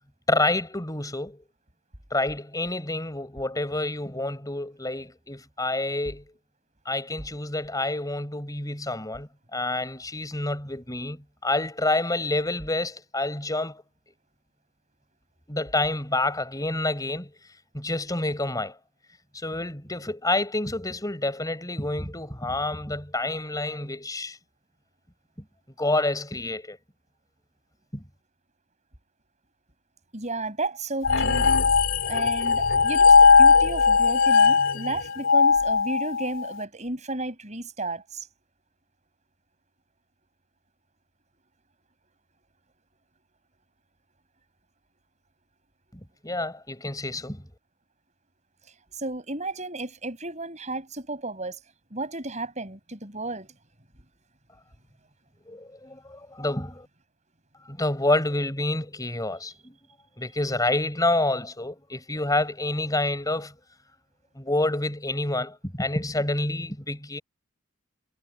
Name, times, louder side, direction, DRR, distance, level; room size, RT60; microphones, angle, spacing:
voice 1, 0.3-1.4 2.1-6.2 6.9-13.8 15.5-17.3 17.7-18.8 19.3-24.4 25.8-26.8 27.9-28.0 46.2-47.4 55.5-56.9 57.7-59.8 60.2-63.5 64.4-67.2, left 2 dB, 15° left, 5.3 m, -28 dB
voice 2, 30.1-31.5 32.0-38.3 48.9-51.6 51.9-53.5, right 2 dB, 35° right, 6.9 m, -33 dB
sound 1, 31.0-36.5, left 5 dB, 60° left, 3.7 m, -18 dB
head